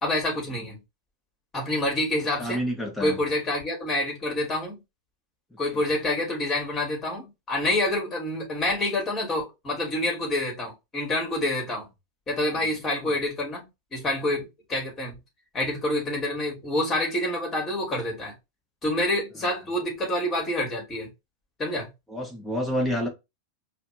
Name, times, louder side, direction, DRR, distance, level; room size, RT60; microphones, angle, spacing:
voice 1, 0.0-0.8 1.5-2.6 3.0-4.8 5.6-11.9 12.3-15.1 15.5-18.3 18.8-21.1 21.6-21.9, left 1 dB, 20° left, 2.9 m, -27 dB
voice 2, 2.4-3.2 22.1-23.1, equal, 5° left, 1.5 m, -28 dB
4.9 x 2.7 x 3.2 m
figure-of-eight pair, 90°, 0 cm